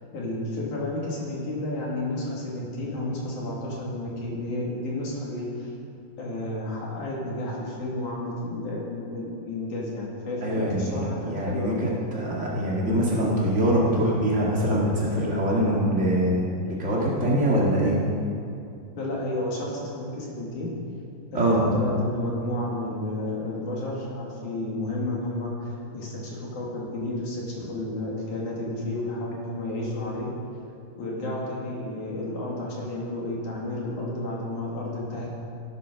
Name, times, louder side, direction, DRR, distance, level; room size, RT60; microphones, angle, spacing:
voice 1, 0.1-5.7 6.2-11.9 19.0-20.7 21.3-30.3 31.0-35.4, left 1 dB, 55° left, -4 dB, 3.5 m, -31 dB
voice 2, 10.4-18.0 21.3-21.8, equal, 50° right, -5 dB, 0.8 m, -24 dB
16.5 x 9.8 x 6.3 m, 2.5 s
omnidirectional pair, 4.7 m